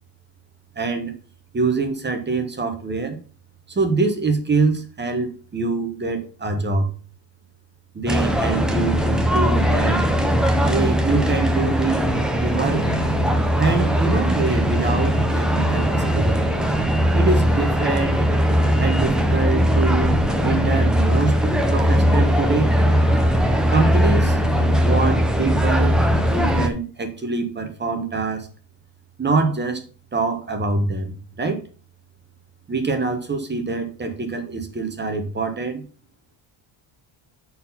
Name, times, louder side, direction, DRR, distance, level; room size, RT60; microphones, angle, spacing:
voice 1, 0.7-1.1 1.5-3.2 3.7-6.9 7.9-10.0 10.6-12.1 12.4-12.8 13.6-16.4 17.1-18.2 18.8-20.1 20.4-22.7 23.7-24.4 24.8-26.0 26.3-28.5 29.2-29.8 30.1-31.6 32.7-35.8, right 3 dB, 20° right, 6 dB, 1.1 m, -24 dB
sound 1, 8.1-26.7, equal, ahead, 0.8 m, -19 dB
6.4 x 4.4 x 5.7 m, 0.37 s
cardioid pair, 145°, 49 cm